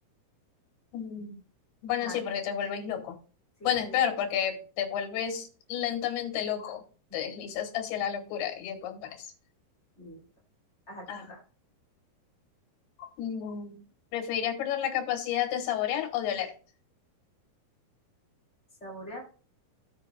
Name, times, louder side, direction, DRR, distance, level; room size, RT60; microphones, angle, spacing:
voice 1, 0.9-1.4 1.8-3.2 3.6-6.8 7.1-9.2 11.1-11.3 13.0-13.8 14.1-16.5, left 9 dB, 85° left, 4 dB, 3.2 m, -31 dB
voice 2, 3.6-3.9 10.0-10.2 10.9-11.4 18.8-19.2, equal, 25° left, -2 dB, 1.7 m, -43 dB
16.0 x 5.8 x 2.3 m, 0.39 s
omnidirectional pair, 4.5 m